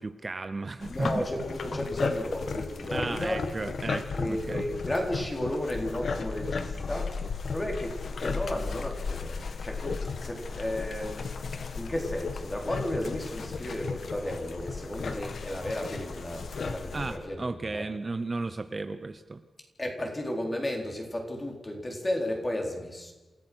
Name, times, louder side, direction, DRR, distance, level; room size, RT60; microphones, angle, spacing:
voice 1, 0.0-1.2 2.9-4.7 16.9-19.4, right 3 dB, 30° right, 10 dB, 0.9 m, -34 dB
sound 1, 0.8-17.2, left 4 dB, 60° left, 1.6 m, -35 dB
voice 2, 0.9-3.4 4.2-7.2 7.5-11.3 11.7-17.9 19.8-23.1, left 1 dB, 20° left, 1 dB, 4.1 m, -33 dB
28.0 x 16.0 x 6.4 m, 1.2 s
wide cardioid pair, 155°, 0 cm